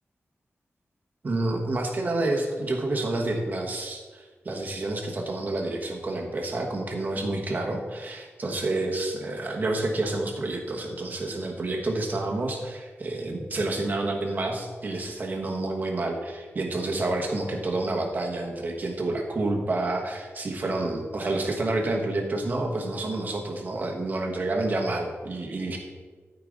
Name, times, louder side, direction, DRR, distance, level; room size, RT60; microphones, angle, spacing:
voice 1, 1.2-25.8, right 2 dB, 40° right, 1 dB, 1.3 m, -29 dB
13.0 x 5.0 x 3.9 m, 1.4 s
wide cardioid pair, 180°, 5 cm